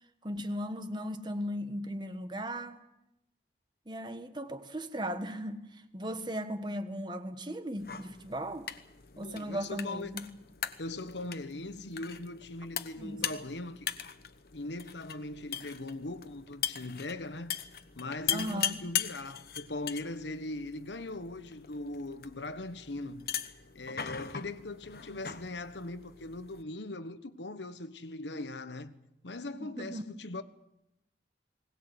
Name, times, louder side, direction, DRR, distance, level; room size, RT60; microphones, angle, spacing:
voice 1, 0.2-2.8 3.9-8.7 9.2-10.3 13.0-13.2 18.3-18.8 29.5-30.0, equal, 25° right, 1.4 m, -37 dB
sound 1, 7.8-26.6, left 9 dB, 60° left, 1.1 m, -40 dB
voice 2, 9.1-10.2 10.8-13.9 14.5-17.6 18.0-29.0 29.2-30.4, left 2 dB, 90° left, 1.2 m, -40 dB
21.0 x 19.0 x 8.1 m
head